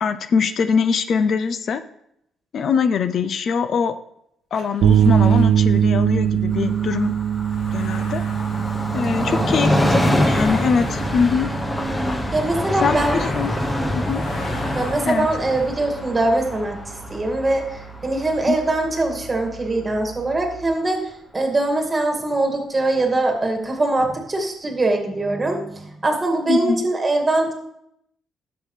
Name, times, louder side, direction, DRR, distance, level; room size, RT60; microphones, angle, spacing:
voice 1, 0.0-1.8 2.5-4.0 4.5-7.1 7.7-8.2 8.9-11.5 12.8-13.6 13.9-14.2 15.1-15.3 18.5-18.6 26.5-26.9, left 6 dB, 60° left, 11 dB, 0.5 m, -22 dB
sound 1, 4.5-15.8, left 3 dB, 80° left, 1.9 m, -40 dB
sound 2, 4.8-20.7, right 9 dB, 85° right, 0.4 m, -24 dB
Train, 6.5-19.8 20.2-20.3, left 1 dB, 15° left, 1.0 m, -25 dB
voice 2, 9.2-9.6 12.3-13.2 14.7-16.8 17.1-21.0 21.3-27.5, right 2 dB, 25° right, 2 dB, 2.1 m, -22 dB
11.5 x 6.9 x 3.3 m, 0.75 s
cardioid pair, 90°, 0 cm